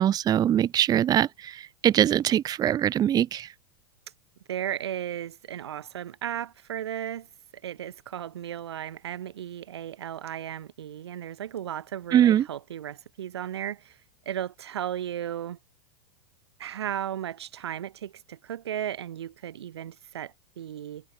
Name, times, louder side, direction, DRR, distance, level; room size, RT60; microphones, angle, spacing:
voice 1, 0.0-3.5 12.1-12.5, right 10 dB, 30° right, 1.0 m, -22 dB
voice 2, 4.5-7.3 7.6-14.0 14.3-15.6 16.6-21.0, right 10 dB, 85° right, 7.8 m, -35 dB
hypercardioid pair, 115°, 13 cm